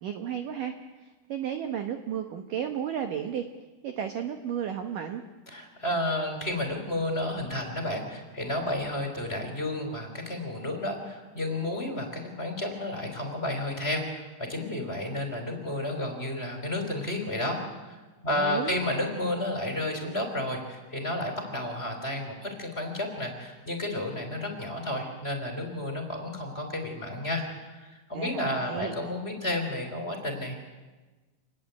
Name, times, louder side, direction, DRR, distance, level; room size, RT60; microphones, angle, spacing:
voice 1, 0.0-3.5 3.8-5.2 18.3-18.8 28.1-29.0, right 9 dB, 70° right, 6 dB, 2.1 m, -33 dB
voice 2, 5.5-27.4 27.7-30.5, left 1 dB, 15° left, 3 dB, 3.6 m, -32 dB
28.0 x 20.5 x 8.5 m, 1.2 s
omnidirectional pair, 5.4 m